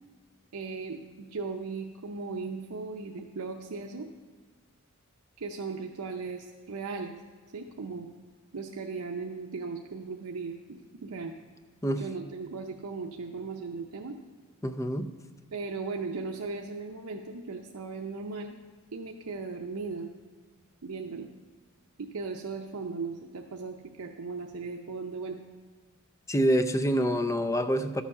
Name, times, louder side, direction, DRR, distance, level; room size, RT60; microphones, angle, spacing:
voice 1, 0.5-4.1 5.4-7.2 7.5-8.1 8.5-11.3 12.0-14.2 15.5-18.6 18.9-20.1 20.8-21.3 22.0-25.4, right 4 dB, 85° right, 2 dB, 0.7 m, -37 dB
voice 2, 14.6-15.1 26.3-28.0, equal, 15° left, 9 dB, 0.5 m, -26 dB
12.5 x 7.1 x 5.5 m, 1.5 s
head